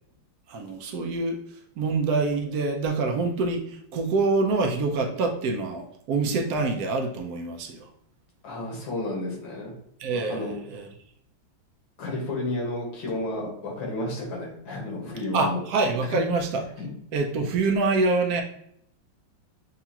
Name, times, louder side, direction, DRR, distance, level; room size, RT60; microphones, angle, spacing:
voice 1, 0.5-1.4 1.8-7.9 10.0-10.9 15.3-16.6 17.1-18.4, right 3 dB, 70° right, 3 dB, 1.0 m, -26 dB
voice 2, 8.4-9.7 10.3-10.5 12.0-15.6 16.1-16.2 16.8-16.9, left 2 dB, 85° left, -2 dB, 2.1 m, -31 dB
6.7 x 2.4 x 2.8 m, 0.70 s
omnidirectional pair, 2.0 m